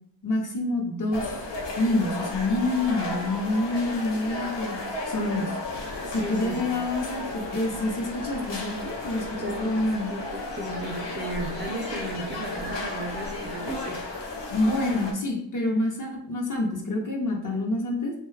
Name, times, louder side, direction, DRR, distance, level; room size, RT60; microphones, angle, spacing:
voice 1, 0.2-1.4 1.8-4.8 5.1-5.5 6.1-10.1 14.5-18.1, left 2 dB, 45° left, 0 dB, 0.8 m, -27 dB
sound 1, 1.1-15.1, left 2 dB, 80° left, 0.7 m, -34 dB
voice 2, 6.0-6.8 9.3-14.0, right 1 dB, 25° right, 0 dB, 0.5 m, -35 dB
2.7 x 2.3 x 3.2 m, 0.69 s
wide cardioid pair, 60°, 42 cm